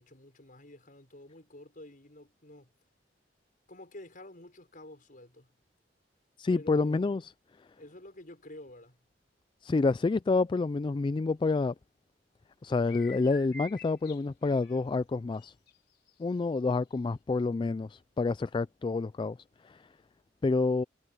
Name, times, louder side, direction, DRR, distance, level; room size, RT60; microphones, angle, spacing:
voice 1, 0.0-2.7 3.7-5.5 6.5-7.2 7.8-9.0, left 1 dB, 50° left, 6.1 m, -49 dB
voice 2, 6.4-7.3 9.6-11.7 12.6-15.5 16.2-19.4 20.4-20.8, left 3 dB, 25° left, 0.3 m, -28 dB
sound 1, 12.8-14.8 15.3-15.8 16.1-16.2 16.9-17.0, left 2 dB, 65° left, 5.4 m, -48 dB
head